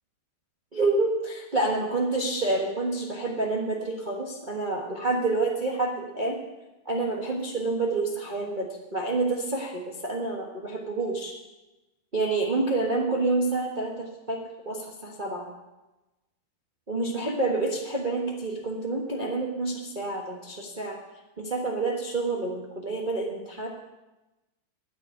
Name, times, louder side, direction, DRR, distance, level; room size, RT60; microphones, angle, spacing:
voice 1, 0.7-6.4 6.8-11.3 12.1-14.4 14.6-15.5 16.9-21.0 21.4-23.7, right 3 dB, 90° right, -1 dB, 0.4 m, -28 dB
9.7 x 8.5 x 9.9 m, 1.0 s
omnidirectional pair, 3.7 m